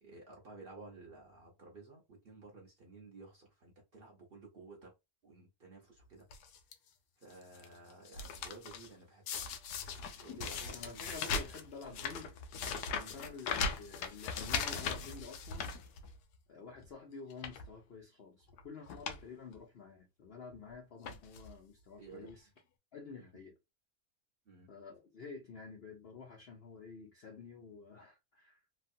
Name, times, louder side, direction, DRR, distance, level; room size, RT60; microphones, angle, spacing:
voice 1, 0.0-4.9 5.2-6.3 7.2-9.6 10.2-11.2 12.9-13.2 22.0-22.4 23.2-23.3 24.5-24.7, right 3 dB, 45° right, 0.9 m, -54 dB
sound 1, 6.3-6.7 7.3-7.7 7.9-8.9 9.3-16.4 16.8-16.9 17.3-17.7 18.5-18.6 18.9-19.2 19.5-19.6 20.5-20.7 21.0-21.5 22.3-22.4 22.6-22.7, left 5 dB, 90° left, 1.2 m, -39 dB
voice 2, 10.7-12.3 12.9-15.7 16.5-22.5 22.9-23.5 24.7-28.6, left 4 dB, 60° left, 0.6 m, -50 dB
3.1 x 2.3 x 2.6 m
omnidirectional pair, 1.7 m